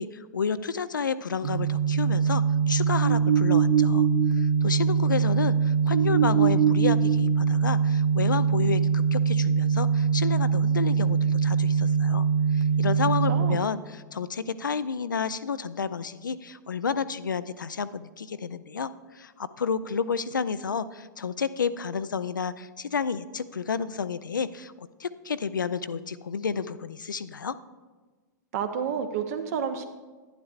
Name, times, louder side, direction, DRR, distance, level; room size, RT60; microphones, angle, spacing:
voice 1, 0.0-4.1 4.4-12.3 12.5-24.7 25.0-27.5, left 6 dB, 80° left, 15 dB, 0.4 m, -31 dB
sound 1, 1.4-13.6, right 6 dB, 85° right, 0.8 m, -23 dB
voice 2, 13.3-13.6 28.5-29.9, right 7 dB, 55° right, 8 dB, 0.8 m, -30 dB
11.0 x 10.0 x 2.4 m, 1.3 s
figure-of-eight pair, 100°, 10 cm